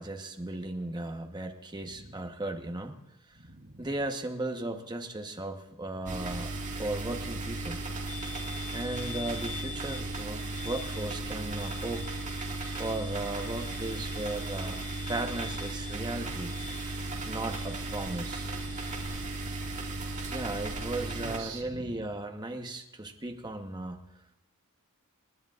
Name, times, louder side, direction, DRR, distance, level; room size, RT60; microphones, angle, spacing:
voice 1, 0.0-3.0 3.3-3.4 3.8-7.8 8.7-12.0 12.7-16.6 17.3-18.5 20.3-24.0, right 2 dB, 20° right, 4 dB, 1.1 m, -36 dB
voice 2, 1.8-2.3 3.3-3.9 21.2-22.1, right 2 dB, 60° right, -1 dB, 3.4 m, -47 dB
sound 1, 6.1-21.4, right 2 dB, 35° right, 1.9 m, -36 dB
sound 2, 8.1-19.2, left 8 dB, 75° left, 4.2 m, -47 dB
29.0 x 10.5 x 2.5 m, 0.91 s
head